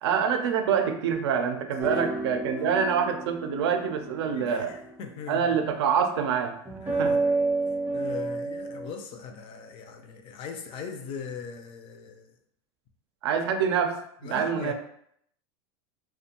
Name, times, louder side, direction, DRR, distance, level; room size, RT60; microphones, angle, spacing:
voice 1, 0.0-4.7 5.3-6.5 7.0-7.2 13.2-14.7, right 7 dB, 85° right, 6 dB, 0.4 m, -26 dB
voice 2, 1.7-2.0 2.7-2.8 4.3-5.5 6.8-7.2 7.9-12.3 14.2-14.7, left 6 dB, 45° left, 6 dB, 0.4 m, -40 dB
sound 1, 1.8-5.0 6.6-8.9, right 3 dB, 15° right, 0.5 m, -30 dB
2.5 x 2.2 x 2.8 m, 0.70 s
supercardioid pair, 120°, 14 cm